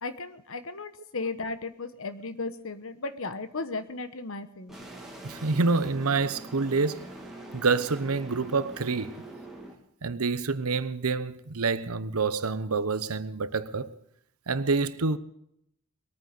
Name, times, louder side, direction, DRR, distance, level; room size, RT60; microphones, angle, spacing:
voice 1, 0.0-4.9, left 3 dB, 65° left, 1.1 m, -35 dB
sound 1, 4.7-9.7, right 1 dB, ahead, 2.7 m, -44 dB
voice 2, 5.2-7.1 7.5-9.2 10.0-13.9 14.5-15.2, right 4 dB, 80° right, 0.9 m, -27 dB
21.0 x 9.3 x 6.7 m
head